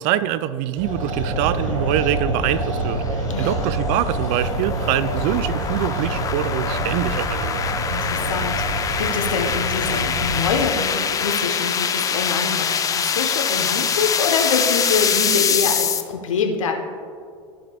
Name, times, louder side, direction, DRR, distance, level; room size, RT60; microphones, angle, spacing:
voice 1, 0.0-7.6, right 12 dB, 50° right, 15 dB, 0.4 m, -24 dB
sound 1, 0.8-10.7, right 2 dB, 80° right, 1.4 m, -26 dB
sound 2, 2.1-16.0, left 7 dB, 20° left, 0.5 m, -24 dB
voice 2, 3.3-3.7 7.9-16.7, left 5 dB, 75° left, 3 dB, 1.0 m, -25 dB
14.0 x 5.2 x 2.3 m, 2.2 s
figure-of-eight pair, 85°, 17 cm